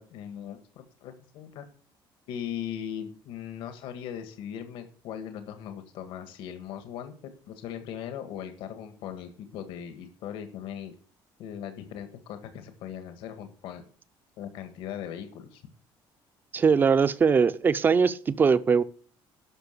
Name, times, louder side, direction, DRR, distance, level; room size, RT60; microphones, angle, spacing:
voice 1, 0.0-1.6 2.3-7.1 7.5-10.9 11.4-13.8 14.4-15.6, left 9 dB, 80° left, 8 dB, 1.7 m, -39 dB
voice 2, 16.5-18.8, right 5 dB, 20° right, 15 dB, 0.5 m, -21 dB
12.0 x 6.1 x 6.7 m, 0.43 s
cardioid pair, 170°, 9 cm